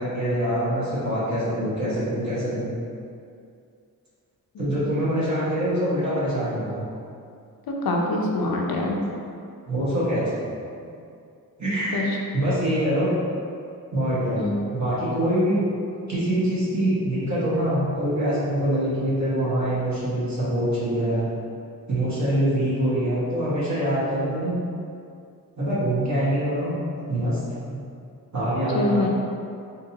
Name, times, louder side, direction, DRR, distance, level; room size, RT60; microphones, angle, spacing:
voice 1, 0.0-2.7 4.6-6.9 9.7-10.2 11.6-12.0 12.3-13.1 13.9-15.6 16.1-21.3 21.9-24.6 25.6-26.8 27.1-27.4 27.7-27.8 28.3-29.1, right 1 dB, 50° right, -10 dB, 1.4 m, -24 dB
voice 2, 7.7-9.0 11.9-12.2 14.3-14.6 28.7-29.1, left 2 dB, 75° left, -1 dB, 0.6 m, -24 dB
3.8 x 2.7 x 2.8 m, 2.4 s
wide cardioid pair, 80°, 37 cm